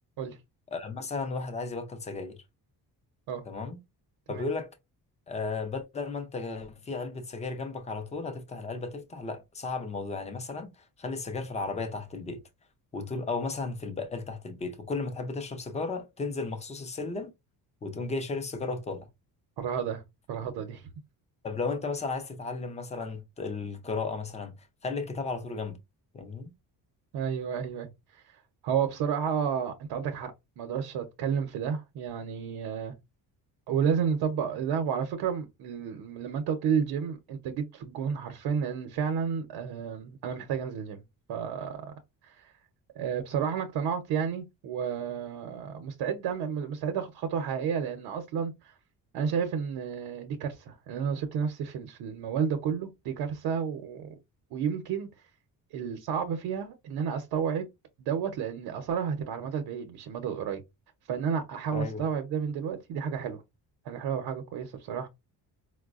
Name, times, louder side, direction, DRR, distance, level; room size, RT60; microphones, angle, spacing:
voice 1, 0.7-2.4 3.5-3.8 4.3-4.7 5.3-12.4 12.9-17.3 17.8-19.1 21.4-25.8 26.1-26.5 61.7-62.0, left 3 dB, 20° left, 0.4 m, -34 dB
voice 2, 19.6-20.0 20.3-20.9 27.1-32.9 33.7-41.0 41.3-41.9 42.2-42.5 43.0-48.7 49.1-54.1 54.5-55.1 55.7-57.7 58.0-60.6 61.1-63.4 63.8-65.1, right 7 dB, 90° right, 0.8 m, -31 dB
4.6 x 2.1 x 2.4 m
cardioid pair, 170°, 37 cm